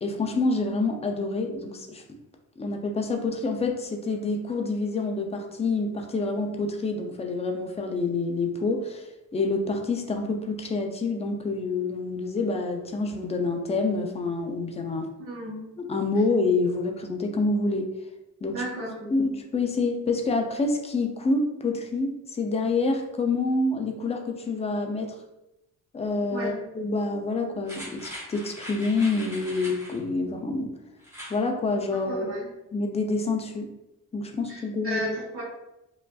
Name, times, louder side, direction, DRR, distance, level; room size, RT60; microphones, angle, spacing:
voice 1, 0.0-2.0 2.6-15.1 15.8-17.9 18.4-18.6 19.1-25.1 25.9-30.7 31.3-32.2 32.7-33.7 34.1-35.0, left 3 dB, 20° left, 3 dB, 0.4 m, -27 dB
voice 2, 15.2-15.6 18.5-19.1 26.3-26.5 32.0-32.5 34.5-35.4, equal, 45° right, -6 dB, 1.1 m, -34 dB
sound 1, 27.6-30.0 31.0-31.4 31.8-31.9, equal, 10° right, 1.3 m, -41 dB
4.9 x 2.4 x 2.3 m, 0.91 s
cardioid pair, 150°, 33 cm